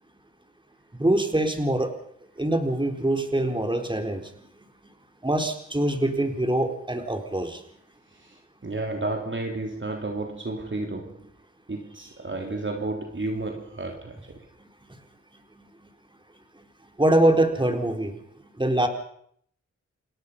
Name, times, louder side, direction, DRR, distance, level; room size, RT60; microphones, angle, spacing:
voice 1, 0.9-1.9 2.4-4.3 5.2-7.6 15.6-15.7 17.0-18.1 18.6-18.9, right 1 dB, 15° right, 4 dB, 4.3 m, -24 dB
voice 2, 8.6-11.3 11.7-14.4, right 2 dB, 40° right, 2 dB, 3.2 m, -32 dB
29.5 x 18.0 x 5.5 m, 0.65 s
cardioid pair, 50°, 29 cm